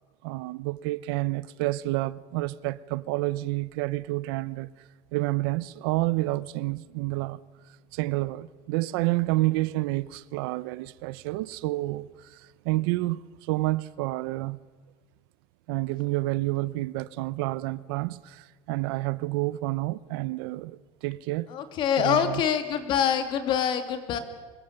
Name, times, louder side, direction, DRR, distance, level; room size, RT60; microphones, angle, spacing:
voice 1, 0.2-4.7 5.1-7.4 7.9-14.6 15.7-21.5 22.0-22.4, right 19 dB, 85° right, 0.9 m, -29 dB
voice 2, 21.5-24.2, left 8 dB, 40° left, 2.7 m, -25 dB
25.0 x 21.5 x 8.9 m
cardioid pair, 165°, 12 cm